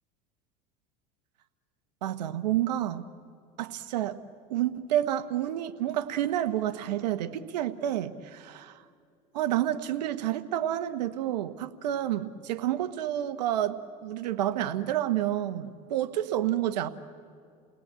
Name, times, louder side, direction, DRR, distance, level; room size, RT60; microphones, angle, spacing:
voice 1, 2.0-3.1 3.6-4.2 4.5-8.8 9.3-16.9, right 12 dB, 90° right, 13 dB, 1.2 m, -29 dB
29.5 x 18.5 x 8.8 m, 2.3 s
supercardioid pair, 105°, 21 cm